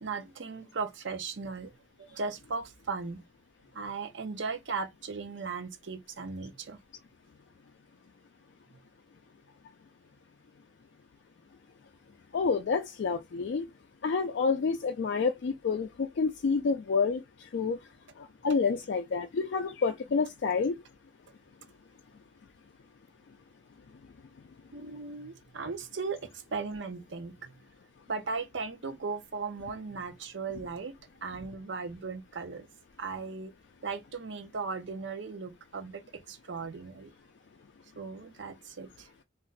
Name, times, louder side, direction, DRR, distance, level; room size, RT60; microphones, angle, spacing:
voice 1, 0.0-1.7 2.0-3.2 3.7-6.8 24.7-27.5 28.1-30.9 31.2-32.7 33.0-33.5 33.8-37.1 38.0-39.1, right 4 dB, 65° right, 0.6 m, -37 dB
voice 2, 12.3-13.7 14.0-17.8 18.2-20.8, left 5 dB, 60° left, 0.3 m, -29 dB
2.5 x 2.2 x 3.8 m
head